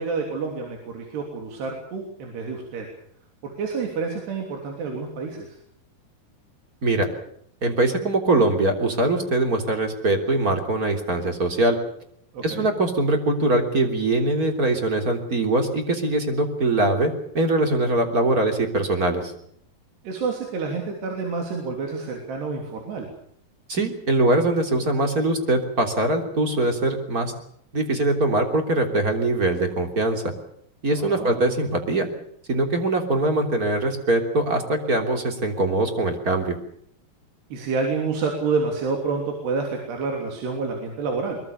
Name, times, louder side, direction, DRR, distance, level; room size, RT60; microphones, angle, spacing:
voice 1, 0.0-2.9 3.4-5.6 12.3-12.7 20.1-23.1 30.9-31.6 37.5-41.4, right 4 dB, 75° right, 2 dB, 5.3 m, -28 dB
voice 2, 7.6-11.8 12.4-19.3 23.7-27.3 27.7-30.2 30.8-32.1 32.5-36.6, right 2 dB, 25° right, 4 dB, 3.3 m, -22 dB
23.0 x 23.0 x 6.7 m, 0.67 s
omnidirectional pair, 4.8 m